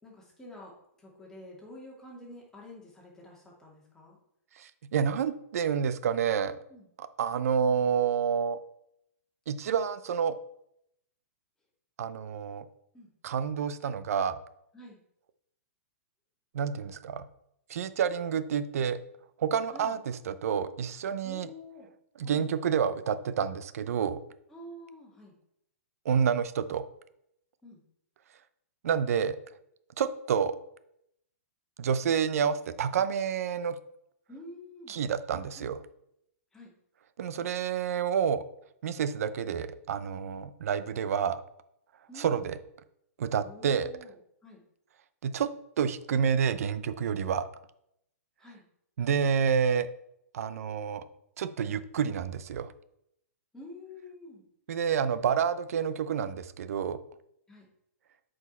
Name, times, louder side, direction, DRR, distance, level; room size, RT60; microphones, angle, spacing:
voice 1, 0.0-4.2 6.7-6.9 12.9-13.1 14.7-15.0 19.7-20.0 21.2-21.9 22.2-22.5 24.5-25.3 27.6-27.8 34.3-35.0 35.6-35.7 36.5-36.7 42.1-42.5 43.4-44.6 48.4-48.6 53.5-54.4 57.5-57.7, left 1 dB, 5° left, -3 dB, 2.4 m, -48 dB
voice 2, 4.6-6.6 7.0-8.6 9.5-10.3 12.0-12.7 13.2-14.4 16.5-17.2 17.7-19.0 19.4-21.5 22.2-24.2 26.0-26.8 28.8-29.4 30.0-30.6 31.8-33.8 34.9-35.8 37.2-38.4 38.8-41.4 42.2-42.6 43.2-43.9 45.2-45.5 45.8-47.5 49.0-49.9 50.3-51.0 51.4-52.7 54.7-57.0, right 7 dB, 70° right, 14 dB, 0.6 m, -29 dB
8.0 x 5.2 x 4.3 m, 0.76 s
hypercardioid pair, 140°, 8 cm